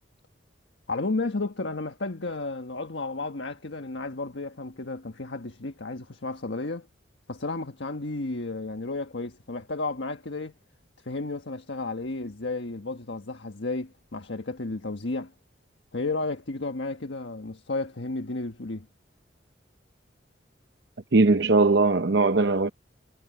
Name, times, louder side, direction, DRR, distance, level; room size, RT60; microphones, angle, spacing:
voice 1, 0.9-6.9 7.3-10.5 11.0-15.3 15.9-18.9, left 3 dB, 90° left, 1.5 m, -32 dB
voice 2, 21.1-22.7, right 3 dB, 70° right, 0.7 m, -20 dB
head